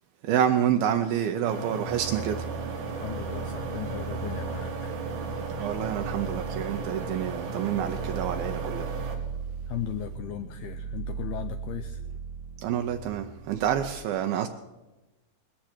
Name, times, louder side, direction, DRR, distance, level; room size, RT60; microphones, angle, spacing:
voice 1, 0.2-2.4 5.6-8.9 12.6-14.5, right 9 dB, 90° right, 5 dB, 2.1 m, -28 dB
sound 1, 1.5-9.2, right 3 dB, 70° right, 4.2 m, -35 dB
sound 2, 1.8-13.9, right 5 dB, 20° right, 2.2 m, -37 dB
voice 2, 2.9-4.9 9.7-12.0, left 12 dB, 85° left, 8 dB, 2.2 m, -37 dB
20.5 x 14.5 x 4.5 m, 1.1 s
omnidirectional pair, 5.4 m